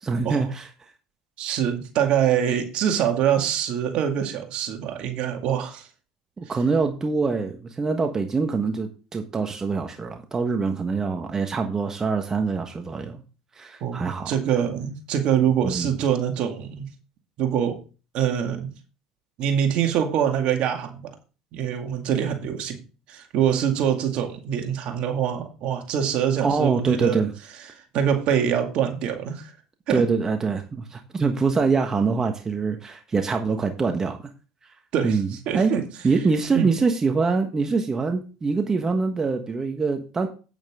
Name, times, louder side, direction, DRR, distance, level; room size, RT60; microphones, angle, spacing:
voice 1, 0.0-0.7 6.4-13.2 13.6-14.3 15.6-15.9 26.4-27.3 29.9-34.3 35.0-35.7 36.0-40.3, right 4 dB, 25° right, 5 dB, 1.3 m, -24 dB
voice 2, 1.4-5.9 13.8-16.9 17.4-17.8 18.1-18.7 19.4-21.1 21.5-22.8 23.1-27.2 27.7-29.5 29.9-30.0 34.9-35.2 35.5-35.8 36.5-36.7, right 9 dB, 60° right, 4 dB, 2.2 m, -24 dB
9.1 x 8.9 x 3.7 m, 0.34 s
supercardioid pair, 90°, 2 cm